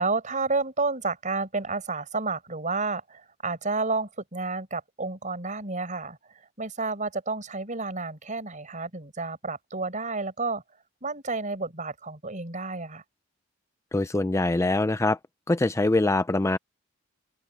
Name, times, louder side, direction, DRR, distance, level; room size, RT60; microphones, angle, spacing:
voice 1, 0.0-6.2 6.6-10.6 11.0-13.0, right 3 dB, 40° right, 6.3 m, -30 dB
voice 2, 13.9-15.2 15.5-16.6, left 2 dB, 15° left, 0.4 m, -23 dB
open air
head